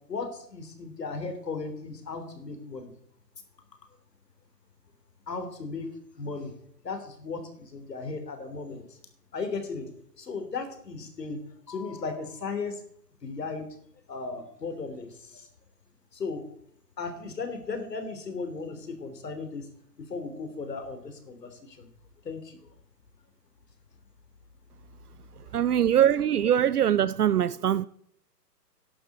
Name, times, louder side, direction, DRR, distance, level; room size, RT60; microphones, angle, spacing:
voice 1, 0.1-2.9 5.3-5.9 6.2-6.5 6.8-9.0 9.3-9.9 10.2-11.4 11.7-12.8 13.2-13.7 14.1-15.5 16.1-16.4 17.0-19.7 20.1-21.9 22.2-22.7 25.5-25.6, left 4 dB, 75° left, 3.4 m, -36 dB
voice 2, 25.5-27.9, right 10 dB, 65° right, 0.6 m, -22 dB
11.0 x 7.9 x 6.8 m
hypercardioid pair, 170°, 49 cm